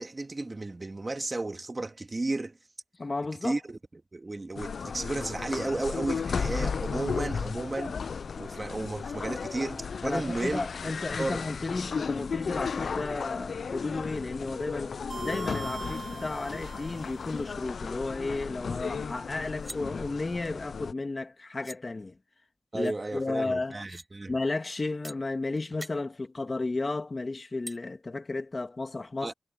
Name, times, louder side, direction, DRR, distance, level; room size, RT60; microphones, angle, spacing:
voice 1, 0.0-2.6 3.4-8.0 8.4-10.7 11.2-11.4 22.7-24.3 29.2-29.3, right 2 dB, 40° right, 2.0 m, -33 dB
voice 2, 3.0-3.5 10.0-14.9 15.2-22.2 22.7-23.8 24.3-29.3, left 3 dB, 45° left, 2.1 m, -33 dB
sound 1, 4.6-20.9, left 5 dB, 85° left, 0.4 m, -35 dB
sound 2, 15.1-17.5, right 4 dB, 70° right, 1.1 m, -41 dB
sound 3, 18.7-18.8 19.1-19.8 21.2-21.3 21.6-21.8 22.7-22.9 23.7-24.1 25.0-25.2 25.6-25.9 27.7-27.8, right 1 dB, 10° right, 5.6 m, -44 dB
cardioid pair, 60°, 0 cm